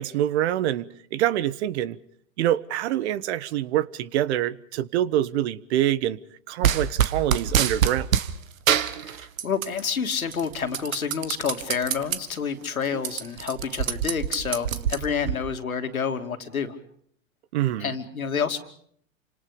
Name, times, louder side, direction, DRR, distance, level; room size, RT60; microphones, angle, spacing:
voice 1, 0.0-2.0 2.4-6.2 6.5-8.1 17.5-17.9, right 12 dB, 50° right, 1.3 m, -25 dB
sound 1, 6.6-8.3 8.7-9.8 10.1-12.2 12.6-12.7 12.9-15.4, right 9 dB, 75° right, 1.8 m, -25 dB
voice 2, 9.0-16.8 17.8-18.6, left 6 dB, 90° left, 2.9 m, -29 dB
29.5 x 26.0 x 5.2 m
hypercardioid pair, 120°, 41 cm